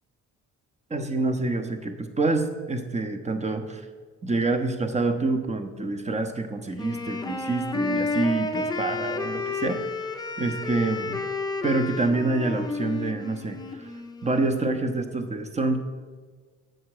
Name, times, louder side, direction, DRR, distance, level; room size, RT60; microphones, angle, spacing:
voice 1, 0.9-3.8 4.2-9.8 10.4-11.2 11.6-13.9 14.2-15.8, right 3 dB, 20° right, 7 dB, 0.8 m, -27 dB
Wind instrument woodwind instrument, 6.7-14.6, left 3 dB, 15° left, 0.5 m, -31 dB
7.6 x 5.0 x 4.8 m, 1.5 s
cardioid pair, 90°, 30 cm